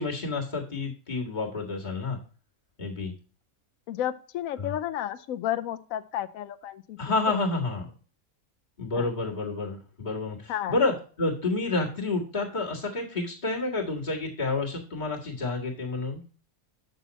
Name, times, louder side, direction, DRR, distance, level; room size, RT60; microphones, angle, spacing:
voice 1, 0.0-2.2 2.8-3.1 4.6-4.7 7.0-7.9 8.8-16.2, left 3 dB, 35° left, -3 dB, 1.9 m, -29 dB
voice 2, 3.9-7.4 8.9-9.1 10.5-10.8, left 11 dB, 80° left, 13 dB, 1.0 m, -32 dB
8.0 x 6.2 x 4.0 m, 0.39 s
omnidirectional pair, 1.5 m